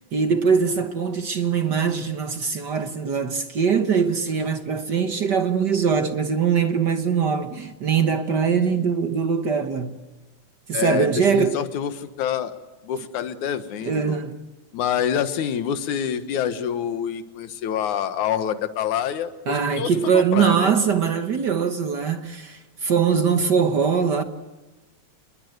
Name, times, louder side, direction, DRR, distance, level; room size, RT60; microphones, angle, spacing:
voice 1, 0.0-10.0 10.7-11.6 13.8-14.4 19.5-24.2, right 6 dB, 55° right, 1.2 m, -22 dB
voice 2, 10.7-12.5 12.8-14.2 14.7-20.7, left 9 dB, 75° left, 2.7 m, -26 dB
27.5 x 21.5 x 8.0 m
omnidirectional pair, 3.5 m